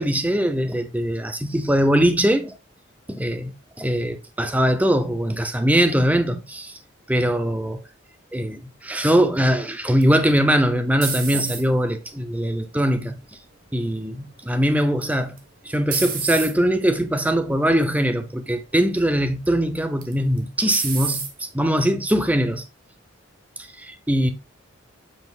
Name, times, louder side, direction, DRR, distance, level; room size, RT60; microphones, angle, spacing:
voice 1, 0.0-2.6 3.1-3.5 3.8-6.8 7.1-7.8 8.3-13.2 13.7-15.4 15.6-21.2 21.5-22.6 23.6-24.3, equal, 10° right, 0.7 m, -21 dB
sound 1, 10.0-11.9 12.5-13.0 15.0-15.4 15.9-16.5 17.3-17.5 18.0-18.1 20.0-20.4 20.7-21.3, right 6 dB, 45° right, 1.3 m, -28 dB
7.2 x 6.1 x 2.4 m
head